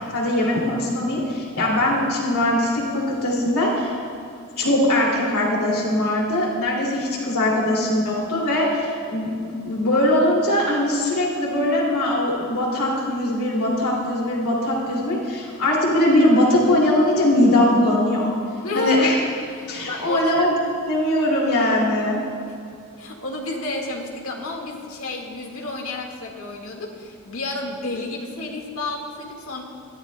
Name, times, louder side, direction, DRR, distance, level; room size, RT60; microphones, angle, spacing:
voice 1, 0.1-3.9 4.6-9.3 9.6-18.3 18.7-19.2 19.7-20.5 20.9-22.2, left 1 dB, 85° left, -3 dB, 2.5 m, -21 dB
voice 2, 18.6-19.1 19.5-20.3 23.0-29.6, left 2 dB, 70° left, 1 dB, 1.7 m, -30 dB
21.5 x 13.5 x 2.2 m, 2.3 s
head